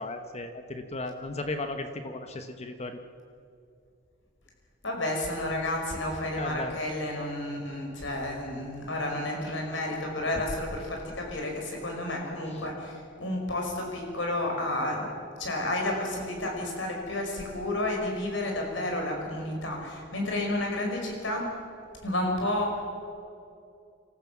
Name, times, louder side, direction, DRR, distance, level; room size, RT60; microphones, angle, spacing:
voice 1, 0.0-3.0 6.4-6.7 12.5-12.7, left 2 dB, 35° left, 7 dB, 1.1 m, -35 dB
voice 2, 4.8-15.1 15.4-21.5 22.0-22.8, left 1 dB, 75° left, 1 dB, 5.6 m, -31 dB
27.0 x 14.5 x 7.4 m, 2.5 s
head